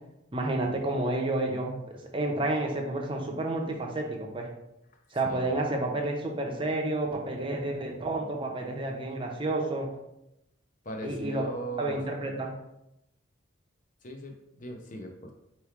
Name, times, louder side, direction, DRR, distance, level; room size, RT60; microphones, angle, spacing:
voice 1, 0.3-4.5 5.1-9.9 11.0-11.4 11.8-12.5, right 2 dB, 25° right, 1 dB, 0.6 m, -30 dB
voice 2, 5.2-5.6 10.8-12.0 14.0-15.3, right 1 dB, 40° left, 3 dB, 0.6 m, -39 dB
4.6 x 3.0 x 3.5 m, 0.85 s
head